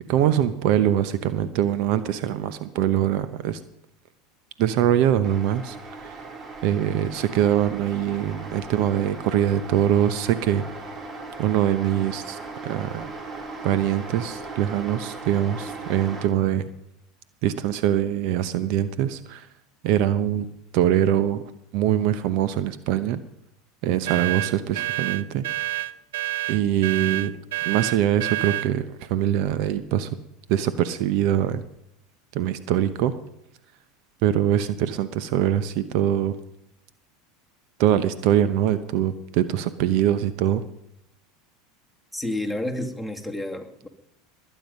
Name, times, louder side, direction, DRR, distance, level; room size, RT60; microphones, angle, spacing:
voice 1, 0.1-3.6 4.6-5.8 6.0-6.2 6.6-10.6 11.4-13.1 13.6-16.6 17.4-19.5 19.8-20.5 20.7-21.4 21.7-23.2 23.8-25.4 26.5-27.3 27.6-30.1 30.5-31.6 32.3-33.1 34.2-36.3 37.8-40.6, right 11 dB, 60° right, 13 dB, 0.9 m, -23 dB
sound 1, 5.2-16.3, right 3 dB, 30° right, 3.0 m, -38 dB
sound 2, 24.1-28.7, right 16 dB, 80° right, 0.5 m, -28 dB
voice 2, 42.1-43.9, left 1 dB, ahead, 6 dB, 2.3 m, -30 dB
21.0 x 9.3 x 5.4 m, 0.80 s
hypercardioid pair, 95°, 0 cm